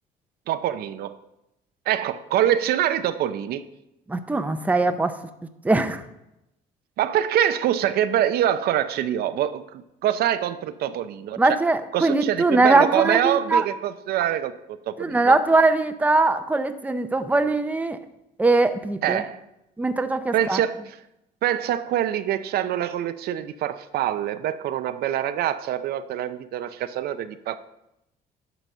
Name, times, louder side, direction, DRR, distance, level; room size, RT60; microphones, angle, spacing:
voice 1, 0.5-1.2 1.9-3.6 7.0-11.6 11.9-15.4 19.0-19.4 20.3-21.0 21.4-27.6, right 11 dB, 65° right, 11 dB, 0.5 m, -25 dB
voice 2, 4.1-5.2 5.6-6.0 11.4-13.6 15.0-18.0 18.4-19.2 19.8-20.6, right 3 dB, 10° right, 8 dB, 0.6 m, -21 dB
10.5 x 4.0 x 6.7 m, 0.88 s
cardioid pair, 110°, 17 cm